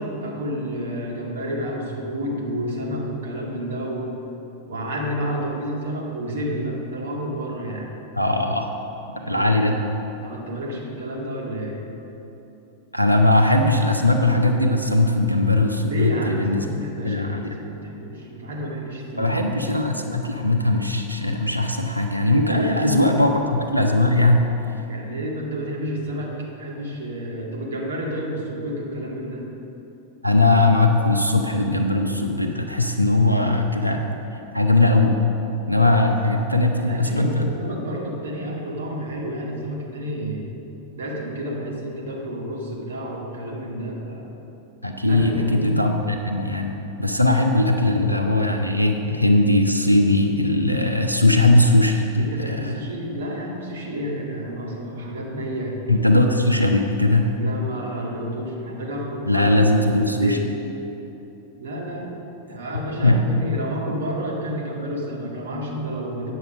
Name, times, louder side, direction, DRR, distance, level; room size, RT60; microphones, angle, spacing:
voice 1, 0.0-4.1 4.7-7.9 9.1-9.6 10.2-11.9 15.8-19.4 22.4-23.3 24.9-29.5 36.8-40.5 40.9-44.3 45.1-45.7 52.2-55.8 57.4-60.5 61.6-62.1 62.5-66.3, equal, 65° right, -2 dB, 1.9 m, -30 dB
voice 2, 8.2-8.7 9.3-9.8 12.9-16.7 17.0-17.6 19.2-24.5 30.2-34.0 34.5-35.2 35.7-37.5 44.8-46.7 47.0-52.8 55.9-57.3 59.3-60.4 63.0-63.5, left 2 dB, 90° left, 3 dB, 0.7 m, -19 dB
9.3 x 6.3 x 6.4 m, 3.0 s
figure-of-eight pair, 90°, 0 cm